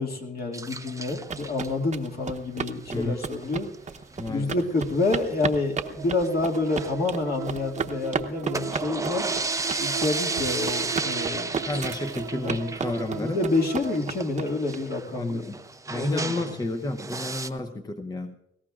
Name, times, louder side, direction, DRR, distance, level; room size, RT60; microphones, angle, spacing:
voice 1, 0.0-3.7 4.3-9.3 9.8-11.7 12.4-12.6 13.1-15.5 15.9-16.6 17.5-17.6, left 3 dB, 50° left, 0 dB, 2.2 m, -28 dB
sound 1, 0.5-1.7 2.9-3.2 3.4-3.5 3.7-3.8 4.1-4.2 4.9-5.5 5.9-7.8 8.3-16.7 17.0-17.5, right 3 dB, 15° right, 0.6 m, -33 dB
sound 2, 1.0-14.8, right 5 dB, 35° right, 0.9 m, -34 dB
voice 2, 2.9-3.3 4.2-4.5 11.6-13.4 15.1-15.6 15.9-18.3, left 2 dB, 20° left, 6 dB, 0.8 m, -31 dB
sound 3, 5.8-14.1, right 9 dB, 75° right, 1.1 m, -37 dB
20.5 x 17.5 x 2.5 m, 0.83 s
cardioid pair, 90°, 20 cm